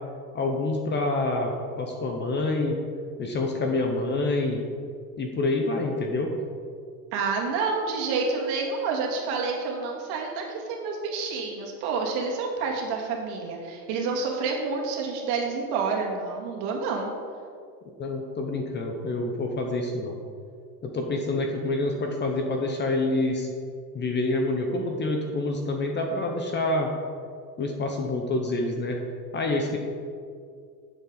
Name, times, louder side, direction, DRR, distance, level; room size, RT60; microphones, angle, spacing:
voice 1, 0.3-2.8 3.2-4.6 5.2-6.3 18.0-20.2 20.8-23.5 23.9-26.9 27.6-29.0 29.3-29.8, left 2 dB, 20° left, 3 dB, 0.9 m, -27 dB
voice 2, 7.1-17.1, right 4 dB, 50° right, -1 dB, 2.2 m, -28 dB
10.5 x 7.3 x 4.0 m, 2.2 s
supercardioid pair, 125°, 49 cm